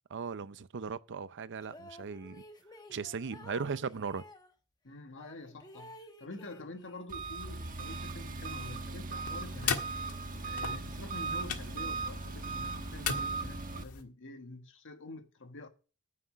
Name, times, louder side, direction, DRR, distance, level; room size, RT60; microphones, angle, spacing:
voice 1, 0.1-2.4 2.9-4.2, right 5 dB, 55° right, 0.6 m, -38 dB
sound 1, 1.6-4.5 5.2-7.1 7.5-8.6, left 1 dB, 20° left, 1.2 m, -53 dB
voice 2, 4.8-10.0 10.3-15.7, left 2 dB, 60° left, 1.5 m, -47 dB
Engine, 7.1-13.8, right 3 dB, 40° right, 1.2 m, -38 dB
sound 2, 9.2-14.0, left 6 dB, 80° left, 1.6 m, -39 dB
9.5 x 8.3 x 6.3 m
head